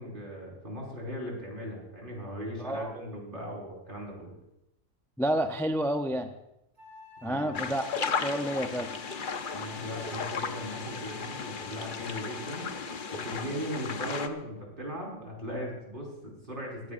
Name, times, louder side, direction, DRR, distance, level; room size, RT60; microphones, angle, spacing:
voice 1, 0.0-4.3 7.2-7.5 9.5-12.7 13.1-16.9, equal, 40° right, -2 dB, 5.0 m, -38 dB
voice 2, 2.6-2.9 5.2-6.3 7.2-8.9, right 1 dB, 5° left, 5 dB, 0.4 m, -30 dB
Wind instrument woodwind instrument, 6.8-13.5, left 3 dB, 15° right, 3.3 m, -49 dB
sound 1, 7.5-14.3, left 5 dB, 45° left, 0.9 m, -35 dB
22.5 x 15.5 x 2.6 m, 0.86 s
omnidirectional pair, 1.4 m